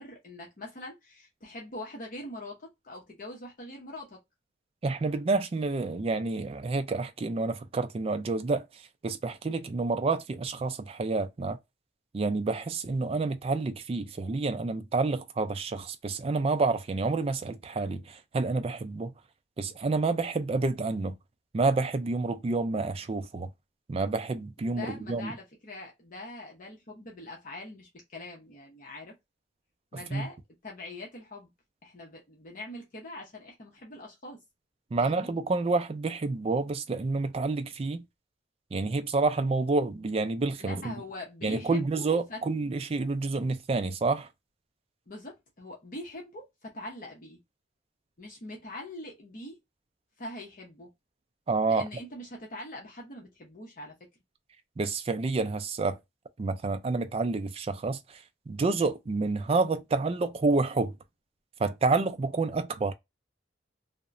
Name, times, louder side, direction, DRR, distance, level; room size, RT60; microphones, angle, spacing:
voice 1, 0.0-4.2 24.7-29.1 29.9-30.4 30.6-31.5 31.8-34.4 35.0-35.3 40.6-42.4 45.1-47.4 48.2-49.6 50.2-50.9 51.7-53.9, left 1 dB, 45° left, 0.7 m, -43 dB
voice 2, 4.8-11.6 12.1-19.1 19.6-21.2 21.5-23.5 23.9-25.3 29.9-30.3 34.9-38.0 38.7-40.9 41.4-44.3 51.5-51.9 54.8-56.0 56.4-61.0 61.6-62.9, right 3 dB, 30° right, 0.3 m, -29 dB
2.8 x 2.1 x 2.4 m
head